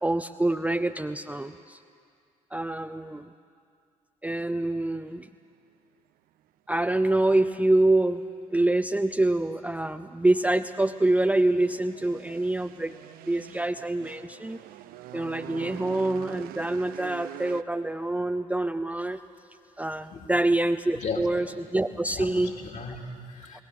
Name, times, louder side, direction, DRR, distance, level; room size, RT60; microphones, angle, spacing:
voice 1, 0.0-1.8 2.5-3.3 4.2-5.3 6.7-8.2 8.5-12.9 13.3-14.6 15.1-19.2 19.8-22.5 22.9-23.0 23.5-23.6, right 2 dB, 5° right, 8 dB, 0.6 m, -26 dB
sound 1, 10.1-17.6, right 14 dB, 55° right, 0.6 m, -44 dB
voice 2, 20.9-21.3 21.9-23.6, left 4 dB, 40° left, 2 dB, 2.6 m, -36 dB
29.0 x 19.5 x 6.5 m, 2.3 s
figure-of-eight pair, 50°, 19 cm